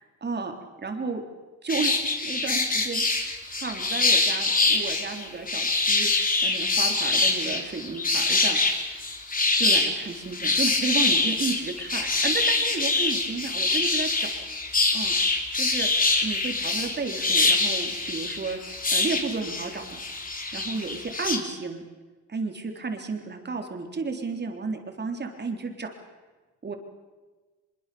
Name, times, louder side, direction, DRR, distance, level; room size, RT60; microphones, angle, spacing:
voice 1, 0.2-0.5 0.8-1.2 1.6-1.9 2.2-6.1 6.4-8.9 9.6-14.3 14.9-15.1 15.6-15.9 16.2-20.0 20.5-21.8 22.3-25.9 26.6-26.8, right 4 dB, 35° right, 4 dB, 3.7 m, -32 dB
sound 1, 1.7-21.4, left 3 dB, 30° left, 3.8 m, -25 dB
24.0 x 22.5 x 7.0 m, 1.3 s
cardioid pair, 90°, 30 cm